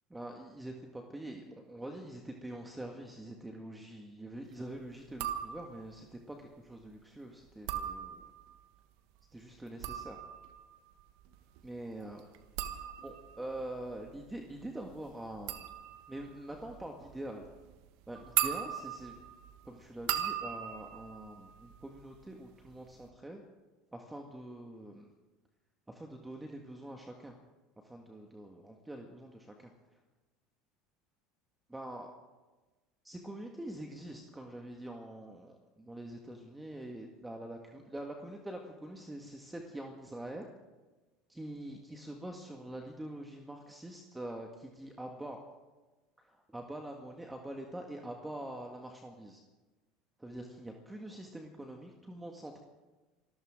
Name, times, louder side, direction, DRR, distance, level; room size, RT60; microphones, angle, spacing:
voice 1, 0.1-8.3 9.3-10.2 11.6-12.2 12.8-15.7 16.1-17.5 18.1-19.2 19.7-23.4 23.9-25.1 25.9-27.4 27.8-29.7 31.7-32.1 33.0-40.5 41.3-45.4 46.2-49.4 50.2-52.6, right 1 dB, 10° right, 2 dB, 1.8 m, -45 dB
sound 1, 5.1-5.9 7.5-8.6 9.6-22.3 22.6-23.1, right 11 dB, 70° right, 1.3 m, -39 dB
26.5 x 14.5 x 3.8 m, 1.2 s
supercardioid pair, 95°, 0 cm